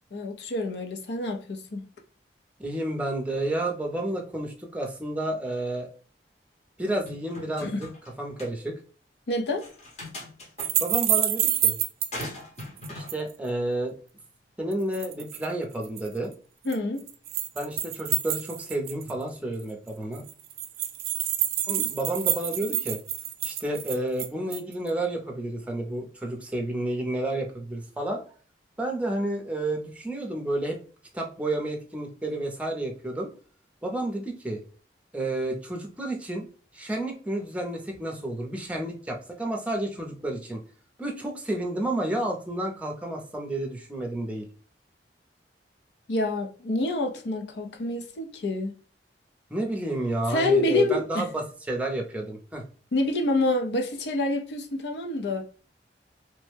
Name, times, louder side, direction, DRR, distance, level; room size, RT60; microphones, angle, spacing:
voice 1, 0.1-1.8 7.6-7.8 9.3-9.6 16.6-17.1 46.1-48.7 50.3-51.3 52.9-55.4, left 2 dB, 75° left, 0.6 m, -27 dB
voice 2, 2.6-5.9 6.8-7.9 8.2-8.8 10.8-11.8 12.9-14.0 14.6-16.3 17.5-20.2 21.7-23.0 23.4-28.2 28.8-30.8 31.1-33.3 33.8-34.6 35.1-36.5 36.7-40.6 41.0-44.5 49.5-52.6, right 1 dB, 5° right, 0.6 m, -30 dB
sound 1, 7.1-8.1 8.4-8.5 9.6-10.7 12.1-13.1, left 1 dB, 40° left, 0.9 m, -39 dB
sound 2, 10.6-12.2 12.6-13.3 14.7-15.5 15.8-16.1 16.7-19.2 19.6-19.7 19.9-20.0 20.2-24.7, right 12 dB, 55° right, 0.4 m, -28 dB
3.2 x 2.1 x 3.2 m
head